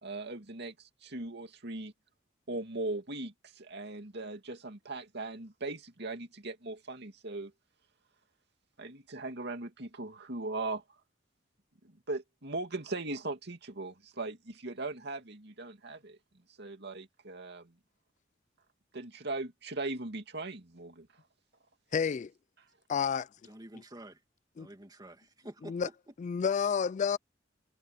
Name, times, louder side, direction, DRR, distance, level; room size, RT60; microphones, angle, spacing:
voice 1, 0.0-1.9 2.5-7.5 8.8-10.8 11.8-16.2 16.6-17.7 18.9-21.1, right 2 dB, 60° right, 2.5 m, -39 dB
voice 2, 21.9-22.3 22.9-23.3 24.6-24.7 25.6-25.9 26.2-27.2, left 6 dB, 40° left, 0.3 m, -30 dB
voice 3, 23.4-24.2 24.6-25.9, right 1 dB, 20° right, 2.4 m, -48 dB
head